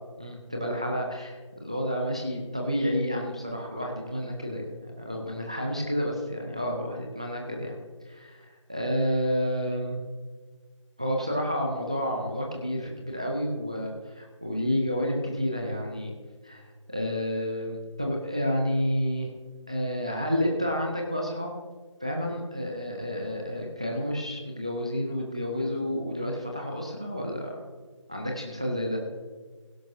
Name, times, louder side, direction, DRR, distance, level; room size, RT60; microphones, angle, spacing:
voice 1, 0.2-7.7 8.0-10.0 11.0-16.1 16.4-16.6 16.9-19.3 19.7-21.5 22.0-27.6 28.1-29.0, equal, 10° right, 1 dB, 0.5 m, -30 dB
16.5 x 11.0 x 2.6 m, 1.4 s
figure-of-eight pair, 170°, 16 cm